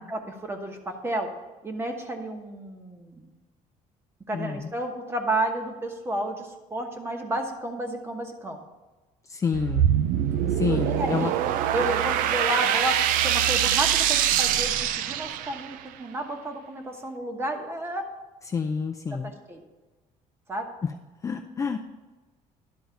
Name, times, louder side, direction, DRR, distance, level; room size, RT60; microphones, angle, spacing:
voice 1, 0.0-1.3 1.6-3.3 4.3-8.6 10.5-11.3 11.7-18.1 19.2-19.6 20.5-20.7, right 1 dB, 20° right, 4 dB, 1.1 m, -31 dB
voice 2, 4.3-4.7 9.3-9.9 10.5-11.3 18.5-19.3 20.8-20.9 21.2-21.8, left 5 dB, 25° left, 4 dB, 0.4 m, -28 dB
sound 1, 9.5-15.8, right 10 dB, 90° right, 0.5 m, -24 dB
11.5 x 3.9 x 7.0 m, 1.2 s
cardioid pair, 155°, 14 cm